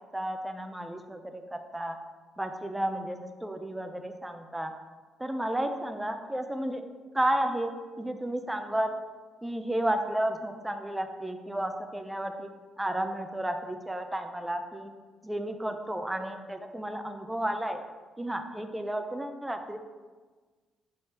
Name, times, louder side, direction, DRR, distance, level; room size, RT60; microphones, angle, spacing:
voice 1, 0.1-2.0 2.4-4.7 5.2-6.8 7.1-8.9 9.4-12.5 12.8-14.9 15.2-17.8 18.2-19.8, right 1 dB, 10° right, 6 dB, 0.4 m, -32 dB
3.3 x 2.7 x 4.5 m, 1.4 s
cardioid pair, 90°, 0 cm